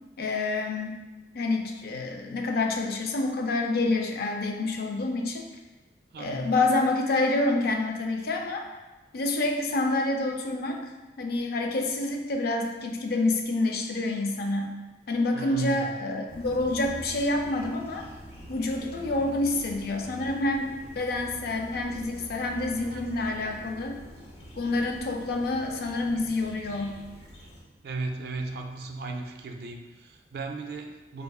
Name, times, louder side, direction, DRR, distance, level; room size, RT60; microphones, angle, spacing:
voice 1, 0.2-1.0 1.3-5.4 6.2-8.6 9.1-10.8 11.2-14.7 15.1-18.0 18.5-24.0 24.6-27.0, left 2 dB, 60° left, 2 dB, 0.4 m, -28 dB
voice 2, 6.1-6.5 15.3-15.9 22.8-23.2 27.8-31.2, right 3 dB, 60° right, 3 dB, 0.4 m, -36 dB
sound 1, 16.3-27.6, equal, 80° left, 1.0 m, -45 dB
4.7 x 2.4 x 2.3 m, 1.1 s
head